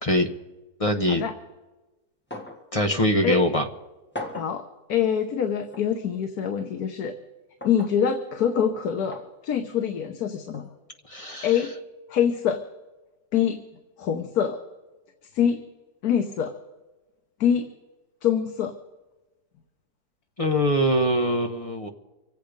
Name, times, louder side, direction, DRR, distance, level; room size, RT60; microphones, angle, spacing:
voice 1, 0.8-1.2 2.7-3.6 11.1-11.5 20.4-21.9, equal, 25° left, 4 dB, 1.0 m, -23 dB
sound 1, 2.3-2.6 3.0-3.1 4.1-4.6 5.7-5.9 7.6-8.0 9.1-9.3 10.5-10.7, left 1 dB, 5° left, 1.8 m, -37 dB
voice 2, 4.9-7.1 7.6-9.2 9.4-10.7 11.4-11.7 12.1-12.6 13.3-13.6 14.0-14.6 15.3-15.6 16.0-16.5 17.4-17.7 18.2-18.7, left 8 dB, 80° left, 6 dB, 1.5 m, -24 dB
25.5 x 8.5 x 5.1 m, 1.1 s
omnidirectional pair, 1.6 m